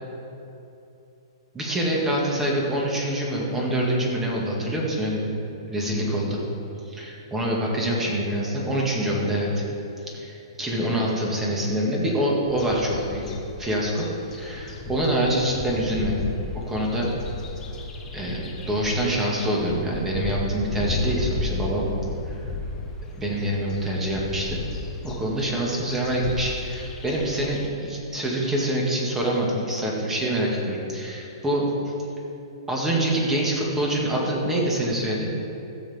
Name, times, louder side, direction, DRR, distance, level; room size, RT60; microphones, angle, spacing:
voice 1, 1.5-5.3 5.7-6.4 6.8-9.6 10.1-13.3 13.6-14.1 14.3-16.2 16.5-17.1 18.1-21.8 22.3-22.4 23.2-24.6 25.0-31.9 32.7-35.3, right 1 dB, 10° right, -3 dB, 2.0 m, -25 dB
sound 1, 12.5-27.7, left 2 dB, 15° left, 1.0 m, -34 dB
15.0 x 7.6 x 3.6 m, 2.9 s
hypercardioid pair, 145°, 3 cm